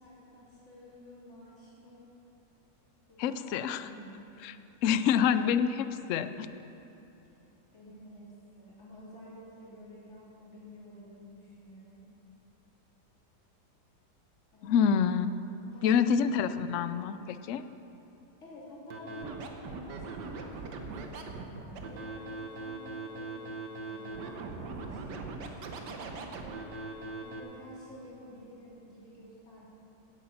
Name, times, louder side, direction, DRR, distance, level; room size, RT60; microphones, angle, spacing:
voice 1, 0.0-2.1 3.1-4.2 7.7-12.1 14.5-14.8 15.7-16.0 18.4-23.5 23.9-26.6 27.2-29.6, equal, 45° left, -8 dB, 3.6 m, -50 dB
voice 2, 3.2-3.9 4.4-4.6 4.8-6.5 14.6-15.3 15.8-17.6, left 7 dB, 70° left, 12 dB, 0.7 m, -27 dB
Scratching (performance technique), 18.9-27.4, right 3 dB, 85° right, 1.6 m, -40 dB
17.0 x 8.2 x 5.7 m, 2.9 s
omnidirectional pair, 1.8 m